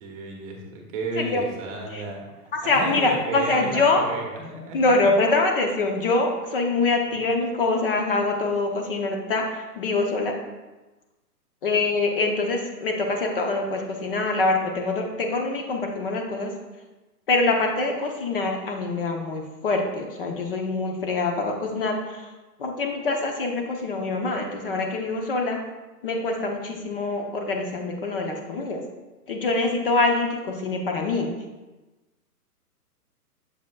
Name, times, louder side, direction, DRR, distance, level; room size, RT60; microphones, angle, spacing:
voice 1, 0.0-2.2 2.6-4.9, right 3 dB, 20° right, 1 dB, 1.0 m, -33 dB
voice 2, 2.6-4.0 4.7-10.3 11.6-16.5 17.3-22.3 22.6-25.6 26.0-28.8 29.3-31.3, left 3 dB, 35° left, 2 dB, 0.8 m, -24 dB
7.2 x 7.1 x 2.3 m, 1.1 s
hypercardioid pair, 150°, 47 cm